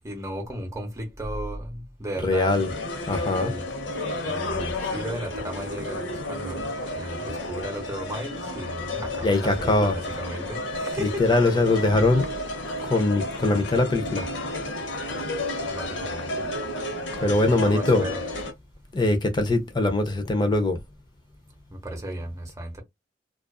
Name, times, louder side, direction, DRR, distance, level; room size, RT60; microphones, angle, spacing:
voice 1, 0.0-2.7 3.1-3.7 4.2-11.3 15.6-16.4 17.2-18.2 21.7-22.8, right 1 dB, 15° right, 0.9 m, -35 dB
voice 2, 2.2-2.7 3.1-3.5 9.2-9.9 11.0-12.3 12.8-14.3 17.2-18.0 18.9-20.8, left 2 dB, 25° left, 0.5 m, -22 dB
sound 1, 2.5-18.5, left 1 dB, 75° left, 0.8 m, -32 dB
2.4 x 2.4 x 2.3 m
head